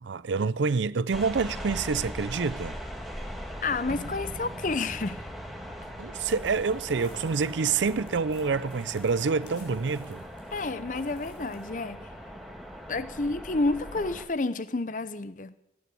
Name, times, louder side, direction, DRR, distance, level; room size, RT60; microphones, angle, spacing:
voice 1, 0.0-2.8 6.0-10.3, right 5 dB, 80° right, 0.5 m, -27 dB
sound 1, 1.1-14.2, equal, ahead, 1.6 m, -40 dB
voice 2, 3.6-5.3 10.5-12.1 12.9-15.5, left 3 dB, 45° left, 0.7 m, -30 dB
sound 2, 3.9-9.9, right 1 dB, 65° right, 1.6 m, -48 dB
sound 3, 6.2-11.7, left 6 dB, 70° left, 4.0 m, -59 dB
17.0 x 9.7 x 8.6 m
head